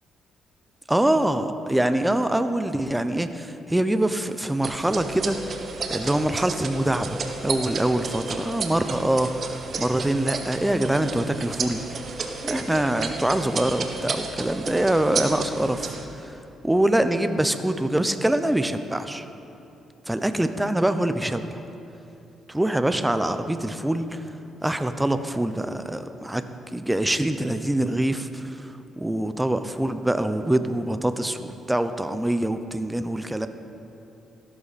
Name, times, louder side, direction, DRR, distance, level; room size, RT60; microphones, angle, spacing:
voice 1, 0.9-5.5 5.9-12.0 12.4-16.4 16.6-19.3 20.1-21.6 22.5-24.2 24.6-26.4 26.7-33.5, right 1 dB, 10° right, 9 dB, 0.7 m, -24 dB
sound 1, 4.6-16.0, right 4 dB, 50° right, 1.2 m, -32 dB
14.5 x 12.5 x 4.2 m, 2.8 s
cardioid pair, 90°, 0 cm